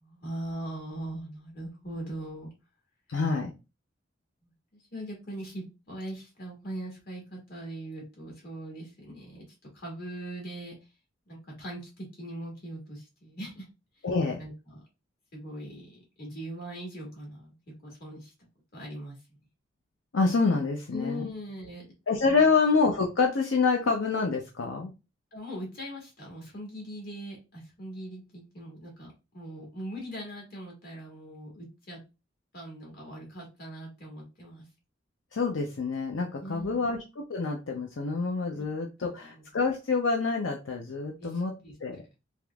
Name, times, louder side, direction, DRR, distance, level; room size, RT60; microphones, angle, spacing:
voice 1, 0.0-2.5 4.9-9.5 9.7-10.7 11.3-13.7 14.4-14.8 15.3-17.6 17.8-18.3 18.7-19.2 20.9-21.9 25.3-32.0 32.5-34.7 36.4-36.9 38.6-38.7 39.2-39.4 41.2-41.7, equal, 55° left, -2 dB, 1.7 m, -40 dB
voice 2, 3.1-3.5 14.0-14.4 20.1-21.3 22.1-24.9 35.3-41.5 41.8-42.0, left 4 dB, 85° left, 1 dB, 0.6 m, -27 dB
3.5 x 2.9 x 2.3 m, 0.27 s
head